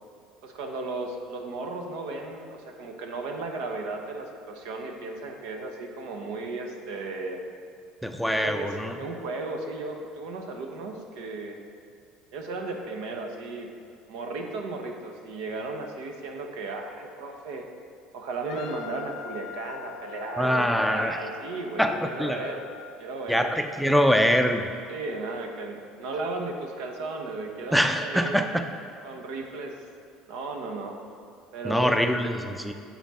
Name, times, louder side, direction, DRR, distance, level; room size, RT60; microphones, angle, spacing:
voice 1, 0.4-7.4 8.3-11.6 12.3-13.7 14.1-17.7 18.1-22.7 23.0-23.8 24.9-28.5 29.0-29.7 30.3-31.0 31.5-32.0, right 3 dB, 80° right, 3 dB, 0.9 m, -35 dB
voice 2, 8.0-8.9 20.4-21.2 21.8-22.5 23.3-24.7 27.7-28.6 31.6-32.7, equal, ahead, 6 dB, 0.5 m, -24 dB
Wind instrument woodwind instrument, 18.5-22.9, left 9 dB, 65° left, 0.6 m, -43 dB
7.3 x 5.8 x 4.2 m, 2.4 s
supercardioid pair, 95°, 0 cm